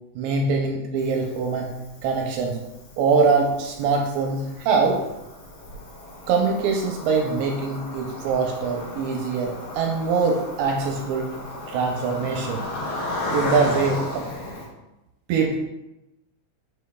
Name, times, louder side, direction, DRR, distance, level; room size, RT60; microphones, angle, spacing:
voice 1, 0.2-1.7 2.0-2.6 3.0-5.0 6.3-11.3 11.7-12.6 13.3-14.3 15.3-15.6, right 4 dB, 80° right, 1 dB, 2.7 m, -23 dB
Cricket, 1.0-14.7, left 2 dB, 45° left, 2.4 m, -35 dB
7.4 x 6.5 x 2.3 m, 0.95 s
omnidirectional pair, 5.3 m